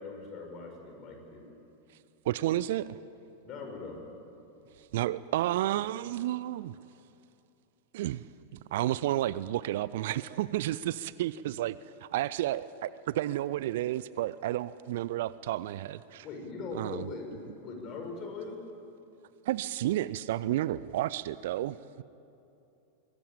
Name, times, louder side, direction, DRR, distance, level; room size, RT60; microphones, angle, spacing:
voice 1, 0.0-1.4 3.4-4.0 16.2-18.6, left 4 dB, 35° left, 3 dB, 5.6 m, -41 dB
voice 2, 2.2-3.0 4.9-6.7 7.9-8.2 8.5-16.3 16.7-17.1 19.5-22.0, right 14 dB, 55° right, 18 dB, 0.5 m, -31 dB
23.0 x 21.5 x 8.9 m, 2.8 s
figure-of-eight pair, 90°, 0 cm